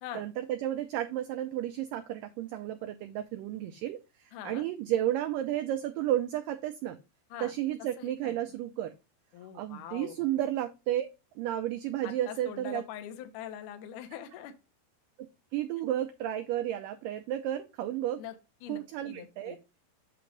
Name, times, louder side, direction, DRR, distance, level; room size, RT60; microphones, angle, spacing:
voice 1, 0.1-7.0 7.4-8.9 9.5-11.1 11.4-12.8 15.5-18.2 18.7-19.6, right 12 dB, 85° right, 7 dB, 1.9 m, -32 dB
voice 2, 4.3-4.6 7.3-7.5 8.0-8.4 9.3-10.3 12.0-14.5 18.2-18.3 18.6-18.8 19.1-19.6, left 10 dB, 70° left, 8 dB, 2.0 m, -43 dB
8.5 x 3.0 x 5.1 m, 0.27 s
omnidirectional pair, 4.5 m